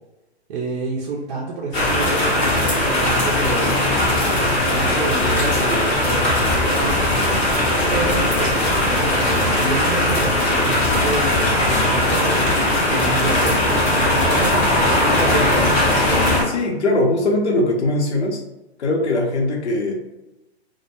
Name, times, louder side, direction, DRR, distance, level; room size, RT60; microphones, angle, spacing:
voice 1, 0.5-2.6 2.9-3.9 4.3-7.0 7.9-12.3 12.9-14.6 14.9-15.7, right 3 dB, 40° right, -4 dB, 0.5 m, -28 dB
sound 1, 1.7-16.4, left 1 dB, 20° left, 0.6 m, -19 dB
voice 2, 16.4-18.4 18.8-20.0, left 2 dB, 80° left, 0 dB, 0.8 m, -20 dB
2.2 x 2.1 x 2.8 m, 0.98 s
hypercardioid pair, 130°, 33 cm